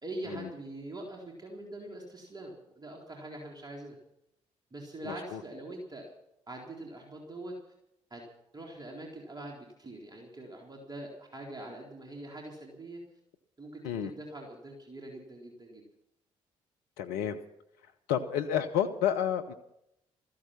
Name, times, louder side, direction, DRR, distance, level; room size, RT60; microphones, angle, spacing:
voice 1, 0.0-4.0 4.7-6.1 6.5-7.5 8.1-8.2 8.5-13.0 13.6-15.9, right 1 dB, 25° right, -1 dB, 4.0 m, -43 dB
voice 2, 5.0-5.4 13.8-14.1 17.0-17.4 18.1-19.5, left 9 dB, 70° left, 6 dB, 0.8 m, -30 dB
16.5 x 14.5 x 5.9 m, 0.81 s
figure-of-eight pair, 40°, 17 cm